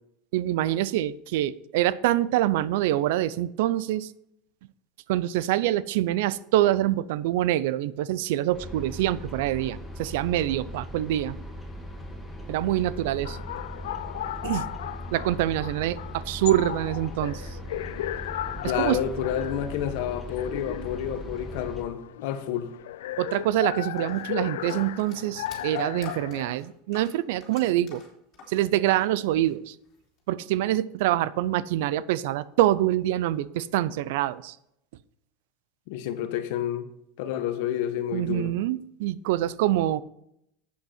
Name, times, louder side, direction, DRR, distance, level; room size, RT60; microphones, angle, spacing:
voice 1, 0.3-4.1 5.1-11.4 12.5-13.4 14.4-14.7 15.1-17.6 18.6-19.0 23.2-28.0 28.5-29.7 30.3-34.6 38.1-40.0, right 14 dB, 75° right, 0.4 m, -25 dB
sound 1, 8.5-21.8, equal, 5° left, 1.9 m, -39 dB
sound 2, 13.2-26.5, left 13 dB, 90° left, 0.4 m, -36 dB
voice 2, 18.6-22.7 35.9-36.9 37.2-38.5, left 10 dB, 65° left, 1.1 m, -29 dB
sound 3, 24.0-29.1 29.3-30.2, left 3 dB, 40° left, 3.2 m, -48 dB
8.4 x 7.6 x 4.4 m
supercardioid pair, 130°, 0 cm